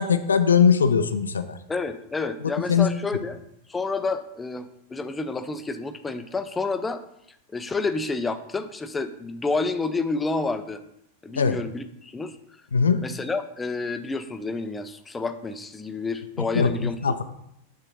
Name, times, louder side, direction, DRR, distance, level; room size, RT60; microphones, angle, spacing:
voice 1, 0.0-1.6 2.7-2.9 11.4-11.6 12.7-13.0 16.5-16.7 17.0-17.1, left 6 dB, 70° left, 10 dB, 0.5 m, -20 dB
voice 2, 1.7-3.4 3.7-7.0 7.5-10.8 11.2-12.4 13.0-17.0, left 3 dB, 15° left, 10 dB, 0.5 m, -29 dB
7.4 x 3.8 x 5.3 m, 0.77 s
figure-of-eight pair, 90°, 0 cm